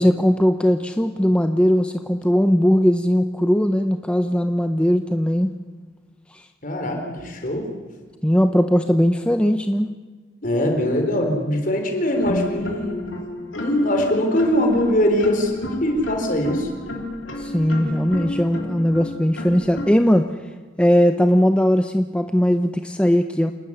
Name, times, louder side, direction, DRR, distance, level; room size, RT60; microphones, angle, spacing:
voice 1, 0.0-5.5 6.3-6.5 8.2-9.9 17.4-20.3 20.8-23.5, equal, 5° left, 7 dB, 0.7 m, -19 dB
voice 2, 6.6-7.7 10.4-13.1 13.5-16.7, left 1 dB, 45° left, 3 dB, 4.2 m, -22 dB
sound 1, 12.1-19.9, left 1 dB, 85° left, 3.3 m, -31 dB
27.5 x 12.5 x 10.0 m, 1.4 s
head